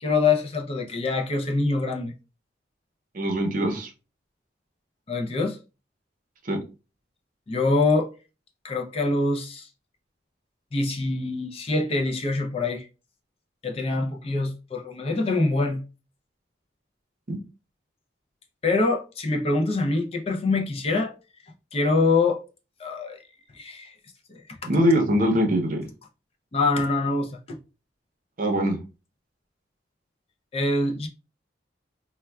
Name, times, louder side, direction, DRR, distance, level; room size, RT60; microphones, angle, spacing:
voice 1, 0.0-2.1 5.1-5.6 7.5-8.1 8.6-9.7 10.7-12.9 13.6-15.8 18.6-21.1 21.7-22.4 22.8-23.2 23.6-23.9 24.3-24.4 26.5-27.6 30.5-31.1, left 3 dB, 30° left, 0.4 m, -24 dB
voice 2, 3.1-3.9 6.4-6.6 17.3-17.4 24.6-25.8 28.4-28.8, equal, 45° right, 0.6 m, -22 dB
4.2 x 2.2 x 2.2 m
head